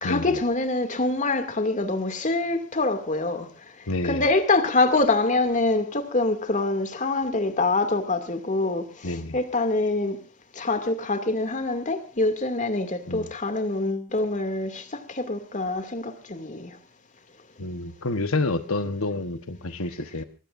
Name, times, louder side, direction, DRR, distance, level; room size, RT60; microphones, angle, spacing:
voice 1, 0.0-3.5 4.0-10.2 10.6-16.8, left 2 dB, 40° left, 2.5 m, -25 dB
voice 2, 3.9-4.2 9.0-9.4 13.1-13.3 17.6-20.2, left 2 dB, 85° left, 1.2 m, -28 dB
24.0 x 20.0 x 2.6 m
head